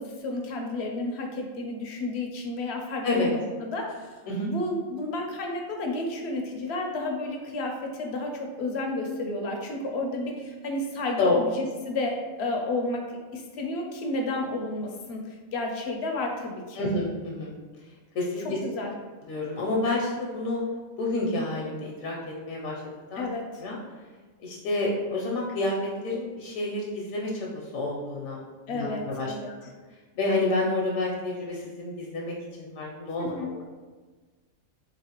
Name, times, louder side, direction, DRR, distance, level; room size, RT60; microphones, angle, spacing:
voice 1, 0.0-16.9 18.4-18.9 23.2-23.6 28.7-29.5 33.2-33.5, left 2 dB, 65° left, 2 dB, 0.7 m, -31 dB
voice 2, 16.8-17.6 18.1-18.6 19.3-20.6 21.0-22.8 23.1-23.3 23.6-23.8 24.4-28.4 28.7-29.3 30.2-33.6, left 2 dB, 80° left, -2 dB, 1.0 m, -29 dB
4.0 x 3.1 x 2.8 m, 1.4 s
omnidirectional pair, 1.4 m